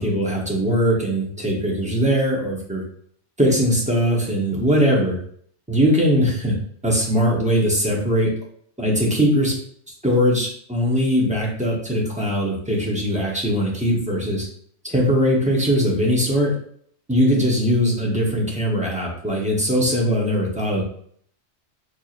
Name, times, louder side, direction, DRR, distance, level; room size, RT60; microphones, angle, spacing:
voice 1, 0.0-2.8 3.4-5.2 5.7-6.5 6.8-8.3 8.8-9.6 10.0-14.5 14.8-16.5 17.1-20.8, equal, 5° right, -3 dB, 0.7 m, -20 dB
4.5 x 2.7 x 2.4 m, 0.62 s
omnidirectional pair, 1.2 m